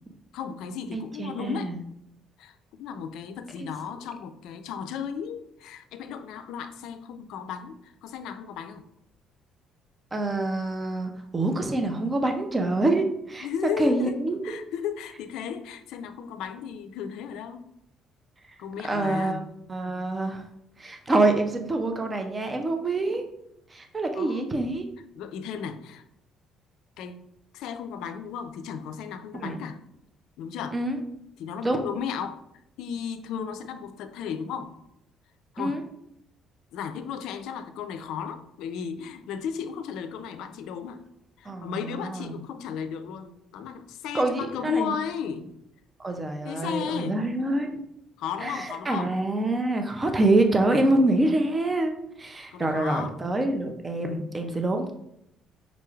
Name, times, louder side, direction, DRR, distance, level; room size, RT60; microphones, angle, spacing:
voice 1, 0.3-1.7 2.4-8.8 13.4-14.2 14.4-17.7 18.6-19.5 24.1-24.5 25.2-26.0 27.0-27.2 27.5-29.8 30.4-30.8 31.4-32.4 32.8-34.7 35.5-35.8 36.7-41.0 41.4-45.5 46.4-47.2 48.2-49.1 52.5-53.1 54.5-54.7, left 7 dB, 80° left, 9 dB, 0.3 m, -34 dB
voice 2, 0.9-1.8 3.6-3.7 10.1-13.5 13.8-14.6 18.8-19.4 19.7-20.4 20.8-23.2 23.7-24.8 29.3-29.6 30.7-31.0 31.6-31.8 35.6-35.8 41.5-42.3 44.1-44.9 46.0-47.8 48.4-51.9 52.2-54.9, right 2 dB, 15° right, 5 dB, 0.4 m, -26 dB
4.9 x 3.1 x 2.3 m, 0.79 s
cardioid pair, 160°, 0 cm